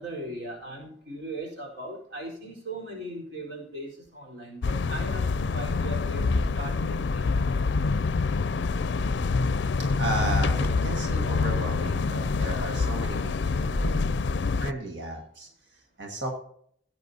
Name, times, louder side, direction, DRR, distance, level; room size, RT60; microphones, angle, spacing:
voice 1, 0.0-7.2, right 1 dB, 65° right, -1 dB, 4.4 m, -38 dB
sound 1, 4.6-14.7, left 4 dB, 70° left, 0.4 m, -26 dB
voice 2, 10.0-14.1 14.6-16.4, right 1 dB, 85° right, 1 dB, 1.8 m, -34 dB
Bird, 12.2-14.1, equal, 15° left, 1.5 m, -37 dB
17.5 x 9.0 x 2.8 m, 0.64 s
head